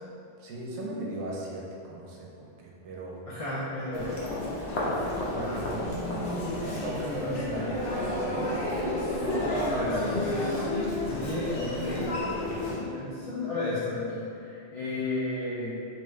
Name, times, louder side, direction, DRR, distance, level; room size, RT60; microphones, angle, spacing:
voice 1, 0.4-3.2 5.3-5.5 6.6-7.6 7.9-8.6, right 1 dB, 90° right, -3 dB, 0.9 m, -37 dB
voice 2, 3.2-4.2 5.3-6.1 7.2-8.0 9.7-12.1 12.7-15.9, left 2 dB, 65° left, -10 dB, 0.3 m, -34 dB
Human voice, 3.9-12.7, left 1 dB, 90° left, 1.0 m, -31 dB
2.8 x 2.3 x 3.1 m, 2.6 s
omnidirectional pair, 1.2 m